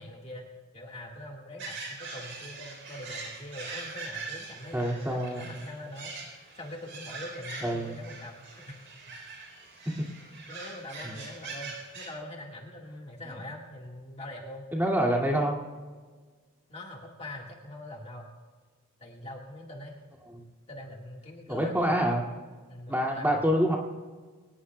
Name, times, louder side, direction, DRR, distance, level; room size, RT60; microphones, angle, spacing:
voice 1, 0.0-8.8 9.1-9.2 9.4-9.5 10.3-14.7 16.7-18.3 19.0-20.0 20.7-22.2 22.7-23.5, left 1 dB, 30° left, -1 dB, 1.8 m, -43 dB
sound 1, 1.6-12.1, right 3 dB, 55° right, 3.9 m, -42 dB
voice 2, 4.7-5.4 7.6-7.9 11.0-11.1 13.3-13.4 14.7-15.6 20.3-20.4 21.5-22.2 22.9-23.8, equal, 10° right, -1 dB, 2.4 m, -26 dB
24.0 x 19.5 x 2.3 m, 1.4 s
head